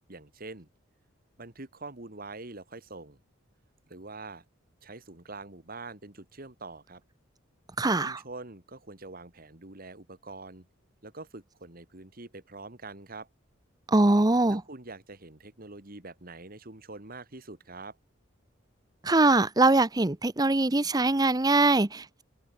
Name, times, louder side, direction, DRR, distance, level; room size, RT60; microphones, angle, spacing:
voice 1, 0.1-0.7 1.4-3.2 3.9-4.4 4.8-7.0 8.0-10.7 11.0-13.3 14.5-18.0, right 3 dB, 45° right, 2.3 m, -44 dB
voice 2, 7.8-8.2 13.9-14.6 19.0-22.2, right 2 dB, 20° right, 0.8 m, -22 dB
head